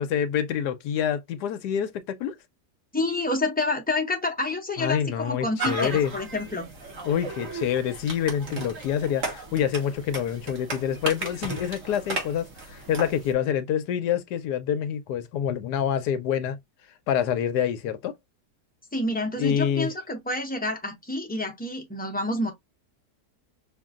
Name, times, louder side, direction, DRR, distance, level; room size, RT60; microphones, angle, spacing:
voice 1, 0.0-2.3 4.8-6.1 7.0-16.6 17.1-18.1 19.4-19.9, left 9 dB, 80° left, 1.1 m, -27 dB
voice 2, 2.9-6.7 18.9-22.5, left 2 dB, 10° left, 0.5 m, -28 dB
sound 1, 5.6-13.3, right 3 dB, 50° right, 1.5 m, -35 dB
5.2 x 2.6 x 2.4 m
omnidirectional pair, 1.8 m